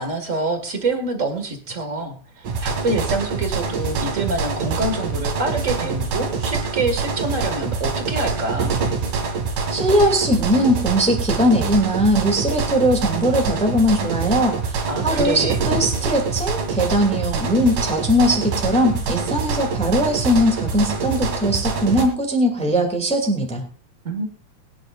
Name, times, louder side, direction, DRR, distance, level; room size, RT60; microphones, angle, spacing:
voice 1, 0.0-8.7 14.9-15.6 24.0-24.3, right 2 dB, 30° right, 6 dB, 1.6 m, -26 dB
sound 1, 2.4-22.0, right 4 dB, 85° right, 3.7 m, -25 dB
voice 2, 9.7-23.6, equal, ahead, 2 dB, 1.9 m, -20 dB
22.0 x 10.5 x 2.5 m, 0.39 s
omnidirectional pair, 3.6 m